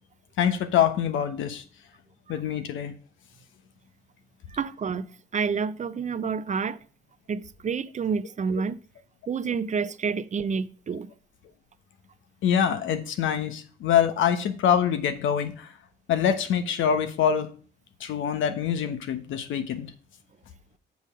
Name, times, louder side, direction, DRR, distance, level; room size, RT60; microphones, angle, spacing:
voice 1, 0.4-1.6 2.3-2.9 12.4-15.7 16.1-17.5 18.0-19.9, left 8 dB, 80° left, 1.1 m, -25 dB
voice 2, 4.5-6.8 7.3-8.8 9.3-11.1, right 5 dB, 35° right, 0.6 m, -29 dB
7.0 x 5.4 x 6.5 m
cardioid pair, 90°, 20 cm